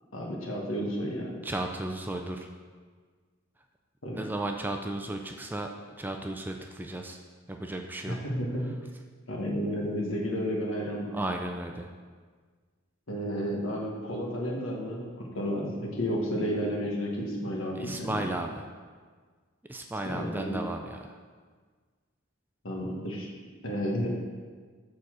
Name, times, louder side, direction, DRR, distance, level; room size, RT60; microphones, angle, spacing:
voice 1, 0.1-1.4 4.0-4.2 8.1-8.7 9.3-11.1 13.1-18.3 20.0-20.6 22.6-23.3 23.6-24.1, equal, 70° left, -1 dB, 1.4 m, -32 dB
voice 2, 1.4-2.5 4.1-5.7 6.0-7.2 7.5-8.2 11.1-11.9 17.8-18.6 19.7-21.2, right 1 dB, 10° right, 3 dB, 0.3 m, -34 dB
6.8 x 4.1 x 6.2 m, 1.5 s
head